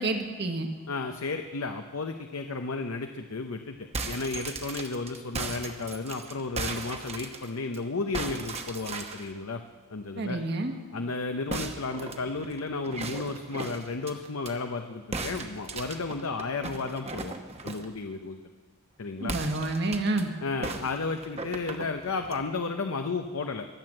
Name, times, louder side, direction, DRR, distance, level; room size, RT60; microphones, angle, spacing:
voice 1, 0.0-0.7 10.2-10.7 19.2-20.3, right 2 dB, 50° right, 5 dB, 1.5 m, -29 dB
voice 2, 0.9-3.8 4.1-9.6 9.9-10.4 10.9-17.4 17.6-18.4 19.0-19.3 20.4-23.7, left 3 dB, 75° left, 6 dB, 0.8 m, -33 dB
sound 1, 3.8-7.8 8.1-9.3 11.5-14.5 15.1-17.9 19.2-20.2 20.6-22.4, right 3 dB, 30° right, 1.0 m, -37 dB
22.5 x 7.9 x 7.6 m, 1.5 s
head